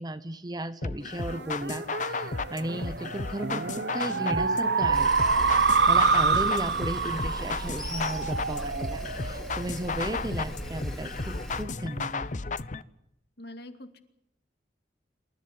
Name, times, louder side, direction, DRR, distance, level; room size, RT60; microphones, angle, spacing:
voice 1, 0.0-5.1 5.5-12.3, right 1 dB, 25° right, 12 dB, 0.9 m, -35 dB
sound 1, 0.8-12.8, left 4 dB, 45° left, 0.8 m, -35 dB
sound 2, 1.3-10.1, right 4 dB, 70° right, 0.9 m, -27 dB
Sawing, 4.9-11.6, equal, ahead, 2.5 m, -38 dB
voice 2, 13.4-14.0, left 1 dB, 65° left, 7 dB, 2.5 m, -44 dB
27.5 x 14.0 x 9.4 m, 0.78 s
head